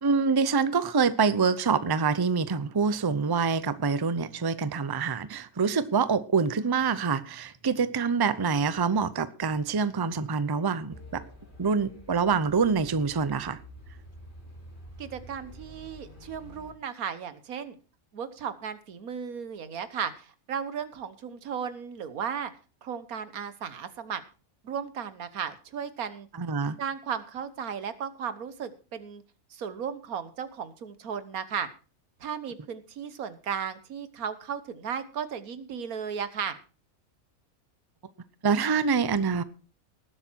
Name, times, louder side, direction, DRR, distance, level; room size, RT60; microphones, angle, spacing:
voice 1, 0.0-11.2 11.6-13.6 26.4-26.8 38.4-39.4, right 5 dB, 25° right, 0.5 m, -26 dB
sound 1, 10.9-16.7, equal, 35° left, 3.5 m, -48 dB
voice 2, 15.0-17.8 18.1-22.5 22.8-24.2 24.6-26.3 26.8-29.2 29.5-31.7 32.2-36.6, right 7 dB, 85° right, 1.6 m, -35 dB
19.0 x 8.1 x 4.5 m
omnidirectional pair, 1.5 m